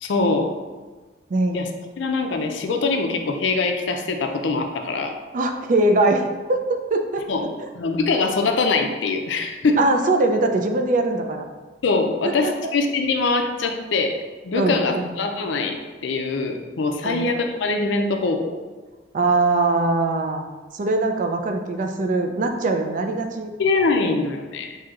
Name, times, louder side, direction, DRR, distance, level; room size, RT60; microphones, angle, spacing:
voice 1, 0.0-0.5 1.5-1.7 2.0-5.1 7.3-7.4 7.8-9.8 11.8-14.2 14.4-18.6 23.6-24.8, left 3 dB, 75° left, 4 dB, 0.4 m, -23 dB
voice 2, 5.3-7.2 9.8-11.4 14.5-15.1 17.0-17.2 19.1-20.4 20.7-23.5, right 2 dB, 45° right, 4 dB, 0.4 m, -21 dB
6.0 x 2.7 x 2.4 m, 1.3 s
head